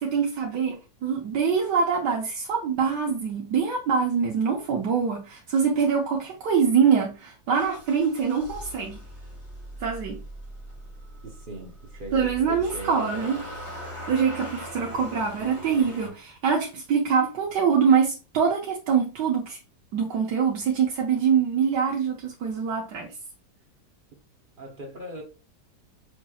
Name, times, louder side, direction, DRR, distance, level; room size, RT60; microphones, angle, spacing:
voice 1, 0.0-9.0 9.8-10.2 12.1-13.4 14.1-19.6 19.9-23.1, right 6 dB, 80° right, 1.4 m, -24 dB
Motor vehicle (road) / Engine starting, 7.5-16.1, equal, 20° left, 1.4 m, -41 dB
voice 2, 11.2-13.3 14.8-15.4 24.6-25.2, right 1 dB, 45° right, 0.7 m, -40 dB
5.8 x 3.0 x 2.3 m
omnidirectional pair, 1.9 m